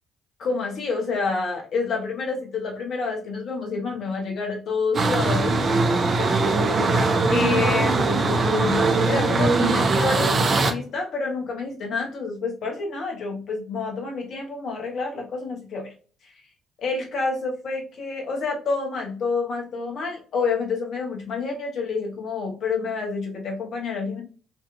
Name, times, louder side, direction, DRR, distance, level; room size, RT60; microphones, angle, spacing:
voice 1, 0.4-6.3 7.3-15.9 16.8-24.2, left 4 dB, 55° left, 1 dB, 1.0 m, -28 dB
sound 1, 4.9-10.7, right 3 dB, 40° right, 0.6 m, -21 dB
3.9 x 2.9 x 2.3 m, 0.39 s
figure-of-eight pair, 45°, 0 cm